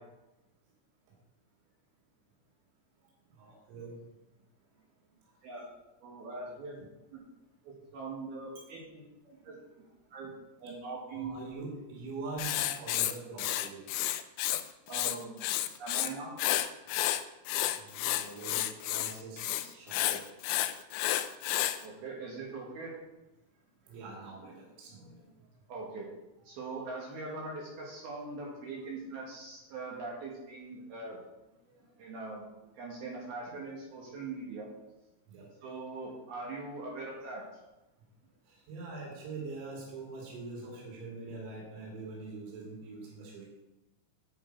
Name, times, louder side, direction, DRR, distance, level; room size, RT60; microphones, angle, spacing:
voice 1, 3.4-3.9 9.4-9.5 11.1-13.9 17.8-20.3 23.9-25.3 31.6-31.7 35.3-35.5 38.5-43.5, right 3 dB, 85° right, -3 dB, 5.0 m, -43 dB
voice 2, 6.0-7.2 7.6-9.5 10.1-10.3 10.6-11.3 14.9-15.5 15.8-16.3 21.8-22.9 25.7-26.1 26.4-31.2 32.0-32.5 32.8-34.7 35.6-37.4, right 3 dB, 60° right, -3 dB, 2.9 m, -41 dB
Writing, 12.4-14.6 14.9-16.1 16.4-21.8, left 14 dB, 90° left, 2.6 m, -31 dB
9.5 x 8.3 x 4.6 m, 1.0 s
omnidirectional pair, 6.0 m